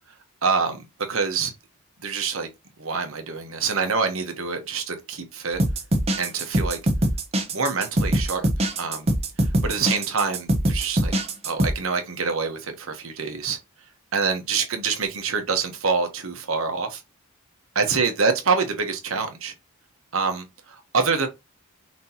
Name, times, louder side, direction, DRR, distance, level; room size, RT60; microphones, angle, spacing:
voice 1, 0.4-1.5 2.0-2.5 2.8-5.6 6.2-6.8 7.5-8.5 8.8-9.1 9.6-11.1 11.4-13.6 14.1-17.0 17.7-19.5 20.1-21.3, right 5 dB, 70° right, 1.1 m, -26 dB
sound 1, 5.5-11.7, right 1 dB, 30° right, 0.7 m, -23 dB
5.9 x 2.8 x 2.9 m
head